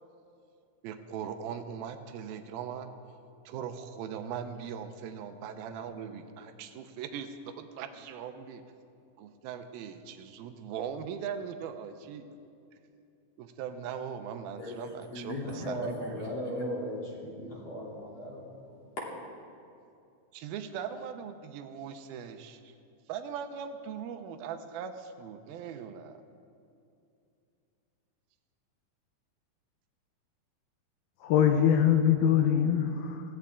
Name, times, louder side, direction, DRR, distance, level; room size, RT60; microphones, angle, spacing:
voice 1, 0.8-2.9 3.5-8.6 9.2-12.3 13.4-16.3 20.3-22.7 23.1-26.2, right 7 dB, 85° right, 8 dB, 2.6 m, -40 dB
voice 2, 15.1-19.1, equal, 40° left, -5 dB, 3.8 m, -37 dB
voice 3, 31.2-33.2, left 9 dB, 85° left, 6 dB, 2.7 m, -23 dB
20.0 x 16.0 x 3.6 m, 2.5 s
omnidirectional pair, 4.3 m